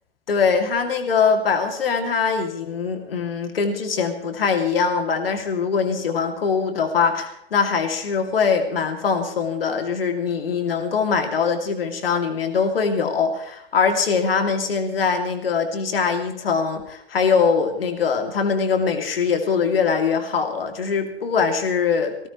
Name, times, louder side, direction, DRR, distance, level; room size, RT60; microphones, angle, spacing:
voice 1, 0.3-22.3, left 5 dB, 70° left, 6 dB, 2.7 m, -22 dB
19.5 x 17.0 x 3.1 m, 0.76 s
figure-of-eight pair, 90°, 30 cm